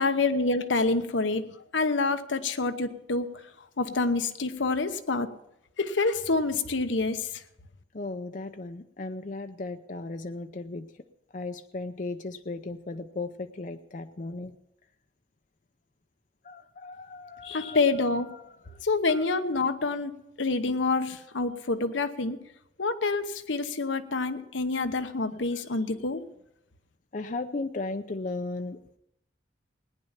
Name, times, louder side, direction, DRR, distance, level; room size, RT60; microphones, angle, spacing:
voice 1, 0.0-3.3 3.8-5.3 5.8-7.4 17.4-18.3 18.8-20.1 20.4-22.4 22.8-26.2, left 3 dB, 90° left, 1.0 m, -27 dB
voice 2, 7.9-11.0 11.3-14.6 16.4-17.8 18.3-18.8 25.5-25.6 27.1-29.0, left 3 dB, 45° left, 0.6 m, -36 dB
18.0 x 10.0 x 5.7 m
head